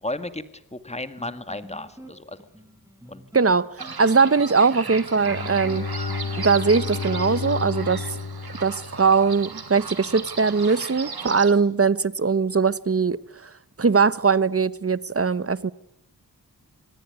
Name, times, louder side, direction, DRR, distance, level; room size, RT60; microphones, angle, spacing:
voice 1, 0.0-2.4 3.1-3.2, left 2 dB, 15° left, 11 dB, 2.0 m, -34 dB
sound 1, 1.2-8.2, right 1 dB, 10° right, 4.6 m, -46 dB
voice 2, 3.3-3.7 4.0-5.9 6.4-8.0 8.6-13.5 13.8-15.7, right 5 dB, 35° right, 17 dB, 1.0 m, -21 dB
sound 2, 3.8-11.5, right 4 dB, 75° right, 3.1 m, -36 dB
Bowed string instrument, 5.1-9.6, left 4 dB, 85° left, 2.3 m, -32 dB
26.0 x 19.5 x 9.6 m, 0.79 s
wide cardioid pair, 80°, 38 cm